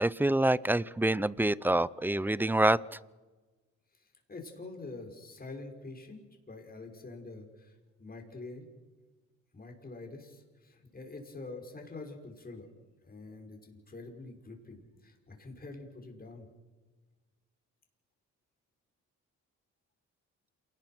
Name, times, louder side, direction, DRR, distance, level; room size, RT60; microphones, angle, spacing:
voice 1, 0.0-2.8, right 1 dB, 5° right, 21 dB, 0.6 m, -26 dB
voice 2, 3.9-8.7 9.5-12.7 13.0-16.5, left 3 dB, 30° left, 3 dB, 6.1 m, -46 dB
28.0 x 19.5 x 6.1 m, 1.3 s
cardioid pair, 90°, 30 cm